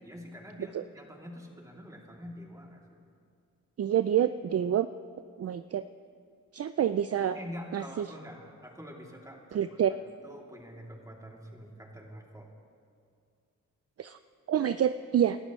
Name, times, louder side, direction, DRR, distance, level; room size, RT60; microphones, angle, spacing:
voice 1, 0.0-3.0 7.3-9.8 10.2-12.5, equal, 10° right, -2 dB, 2.9 m, -46 dB
voice 2, 3.8-4.9 5.4-5.8 6.5-7.4 7.7-8.1 9.5-9.9 14.0-14.2 14.5-15.4, right 10 dB, 50° right, 11 dB, 0.4 m, -27 dB
28.5 x 13.5 x 3.2 m, 2.2 s
cardioid pair, 75°, 31 cm